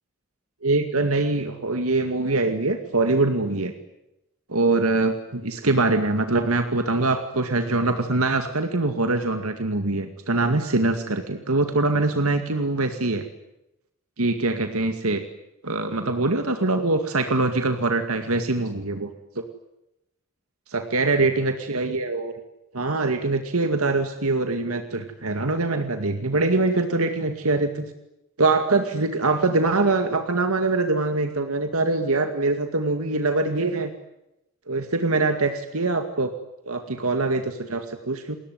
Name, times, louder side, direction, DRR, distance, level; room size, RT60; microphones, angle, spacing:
voice 1, 0.6-3.7 4.5-13.2 14.2-15.2 15.6-19.1 20.7-22.3 22.7-27.9 28.4-33.9 34.7-36.3 36.7-38.4, right 2 dB, 85° right, 7 dB, 2.2 m, -23 dB
30.0 x 21.0 x 9.5 m, 0.90 s
head